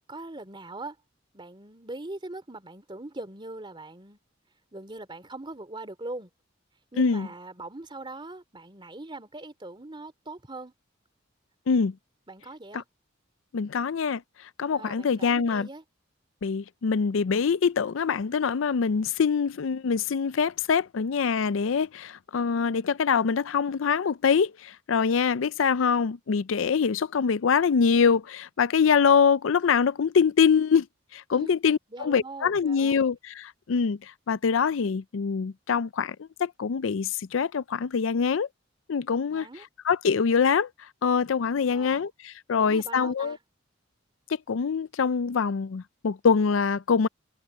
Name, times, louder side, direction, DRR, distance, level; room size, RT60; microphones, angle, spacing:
voice 1, 0.1-1.0 1.3-4.2 4.7-6.3 6.9-10.7 12.3-12.9 14.7-15.8 31.3-31.5 31.9-33.1 39.3-39.6 41.6-42.0 42.6-43.4, right 2 dB, 25° right, 2.8 m, -41 dB
voice 2, 7.0-7.3 11.7-11.9 12.7-12.8 13.5-14.2 14.6-15.7 16.4-30.9 31.1-38.5 38.9-39.5 39.9-40.7 41.0-43.4 44.5-47.1, left 6 dB, 70° left, 0.5 m, -24 dB
head